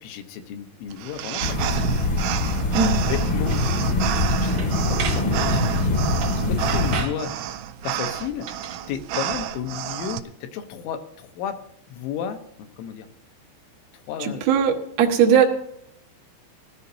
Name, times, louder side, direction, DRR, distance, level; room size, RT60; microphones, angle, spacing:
voice 1, 0.0-1.9 2.8-3.6 4.3-6.1 6.3-7.4 7.8-8.6 8.9-11.6 11.9-13.1 13.9-14.5, left 8 dB, 85° left, 6 dB, 3.4 m, -33 dB
sound 1, 0.9-10.2, right 11 dB, 90° right, 3.0 m, -30 dB
sound 2, 1.4-7.0, left 2 dB, 50° left, 1.1 m, -23 dB
sound 3, 3.5-3.6 4.0-4.3 4.6-5.3 6.2-6.4 6.7-7.2 8.4-8.8, right 6 dB, 55° right, 1.8 m, -33 dB
voice 2, 14.2-15.4, right 7 dB, 75° right, 1 dB, 1.6 m, -19 dB
20.0 x 13.5 x 2.8 m, 0.75 s
omnidirectional pair, 5.3 m